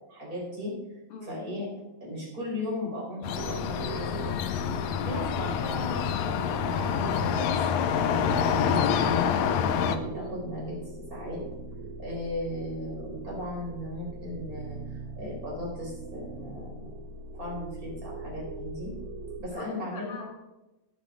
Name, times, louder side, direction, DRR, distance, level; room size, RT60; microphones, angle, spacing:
voice 1, 0.0-1.7 2.0-4.5 5.0-7.5 8.5-9.3 9.8-11.4 12.0-16.9 17.3-18.9 19.4-20.2, left 1 dB, 30° right, -4 dB, 4.8 m, -37 dB
sound 1, 3.2-10.0, left 8 dB, 75° left, 1.8 m, -27 dB
sound 2, 3.4-19.4, right 4 dB, 75° right, 2.2 m, -40 dB
voice 2, 4.7-5.0 19.3-19.6 19.9-20.2, left 4 dB, 50° left, 0 dB, 2.9 m, -44 dB
17.5 x 7.3 x 3.8 m, 1.0 s
omnidirectional pair, 3.4 m